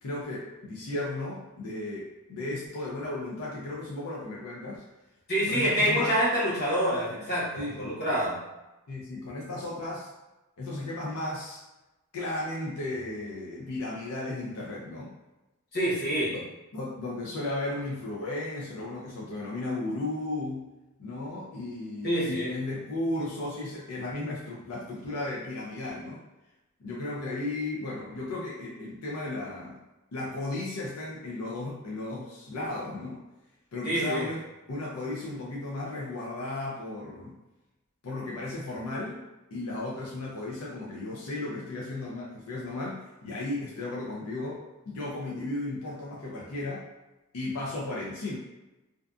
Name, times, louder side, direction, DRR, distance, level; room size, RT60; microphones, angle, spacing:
voice 1, 0.0-4.8 5.5-6.1 7.1-7.2 7.6-8.0 8.9-10.1 10.6-11.6 12.1-15.1 16.3-16.4 16.7-20.6 21.0-26.2 26.8-29.8 30.1-33.2 33.7-34.4 34.7-37.4 38.0-39.2 39.5-46.9 47.3-48.4, left 2 dB, 90° left, -5 dB, 0.5 m, -35 dB
voice 2, 5.3-8.4 15.7-16.4 22.0-22.5 33.8-34.3, equal, 45° left, -8 dB, 1.1 m, -26 dB
2.5 x 2.2 x 2.5 m, 1.0 s
head